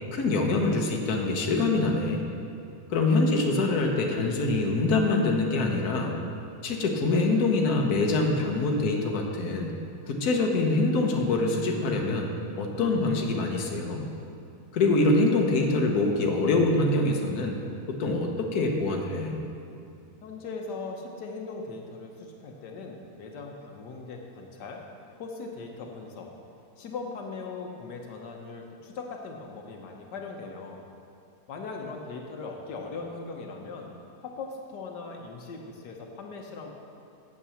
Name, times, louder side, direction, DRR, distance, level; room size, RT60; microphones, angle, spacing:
voice 1, 0.1-2.2 2.9-6.2 6.6-9.7 10.0-12.3 12.6-14.1 14.7-17.6 17.9-19.4, left 2 dB, 70° left, 1 dB, 1.5 m, -25 dB
voice 2, 20.2-24.8 25.2-26.3 26.8-30.8 31.5-33.9 34.2-36.7, left 4 dB, 90° left, 1 dB, 1.6 m, -39 dB
8.6 x 7.7 x 7.1 m, 2.7 s
omnidirectional pair, 1.8 m